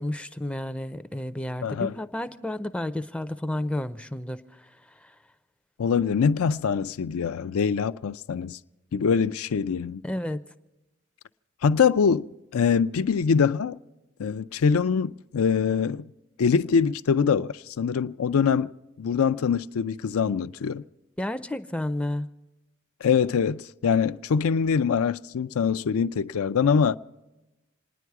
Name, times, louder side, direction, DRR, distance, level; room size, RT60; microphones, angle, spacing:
voice 1, 0.0-5.2 10.0-10.4 21.2-22.3, left 1 dB, 5° left, 0.4 m, -31 dB
voice 2, 1.6-1.9 5.8-8.6 8.9-10.0 11.6-12.3 12.5-13.8 14.2-16.1 16.4-18.7 19.0-20.8 23.0-27.0, left 6 dB, 90° left, 0.4 m, -23 dB
27.5 x 10.0 x 4.7 m
head